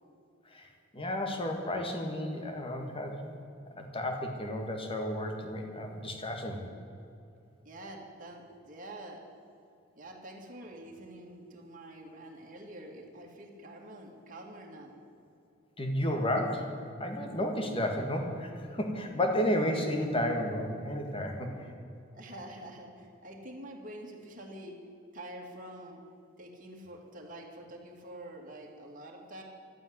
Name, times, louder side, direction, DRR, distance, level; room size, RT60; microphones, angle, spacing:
voice 1, 0.5-3.3 3.8-6.6 15.8-16.7 17.0-21.7, left 1 dB, 30° left, 3 dB, 1.8 m, -32 dB
voice 2, 7.6-9.2 10.0-15.0 22.1-24.8 25.1-26.0 26.4-29.4, right 1 dB, 40° right, 0 dB, 2.2 m, -46 dB
12.0 x 9.0 x 9.5 m, 2.6 s
head